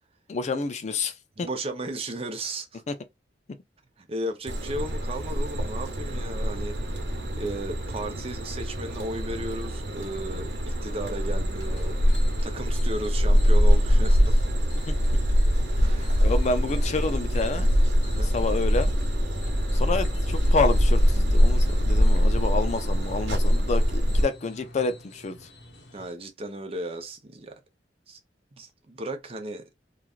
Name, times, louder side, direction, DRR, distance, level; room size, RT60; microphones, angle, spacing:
voice 1, 0.3-1.5 2.9-3.0 14.9-15.0 16.2-17.7 18.2-18.9 19.7-25.5, left 3 dB, 40° left, 0.4 m, -29 dB
voice 2, 1.4-2.8 4.0-14.4 15.8-16.3 18.0-18.3 25.9-27.6 28.1-28.2 28.5-29.6, right 1 dB, 35° right, 0.6 m, -35 dB
sound 1, 4.5-24.2, equal, 80° right, 1.1 m, -23 dB
sound 2, 11.6-26.1, left 3 dB, 75° left, 0.9 m, -48 dB
sound 3, 16.8-23.7, equal, 10° right, 1.0 m, -37 dB
3.1 x 2.4 x 2.3 m
head